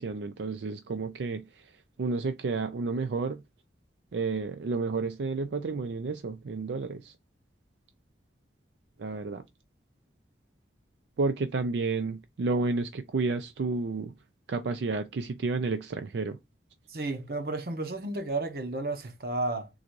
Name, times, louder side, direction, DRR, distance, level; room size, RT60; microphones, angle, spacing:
voice 1, 0.0-1.7 2.0-3.4 4.1-7.1 9.0-9.4 11.2-14.1 14.5-16.4, right 3 dB, 80° right, 0.4 m, -31 dB
voice 2, 16.9-19.7, right 2 dB, 55° right, 0.8 m, -32 dB
3.9 x 2.5 x 4.5 m
head